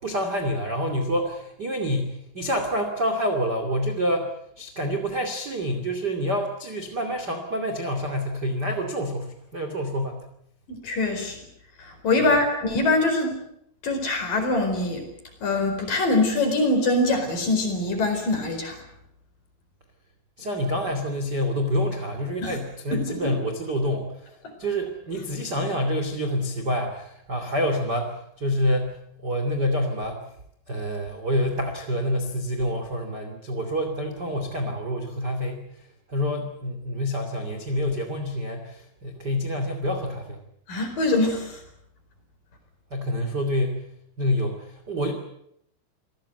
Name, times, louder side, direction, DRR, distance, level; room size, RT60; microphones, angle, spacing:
voice 1, 0.0-10.2 20.4-24.3 24.6-30.2 30.7-35.7 36.1-40.4 42.9-43.8 44.2-45.1, equal, 30° right, 5 dB, 2.1 m, -27 dB
voice 2, 10.7-11.4 11.8-13.4 13.8-15.0 15.4-18.8 22.4-22.6 22.9-23.4 40.7-41.6, left 2 dB, 45° left, 5 dB, 5.7 m, -23 dB
28.5 x 18.5 x 8.0 m, 0.74 s
omnidirectional pair, 5.8 m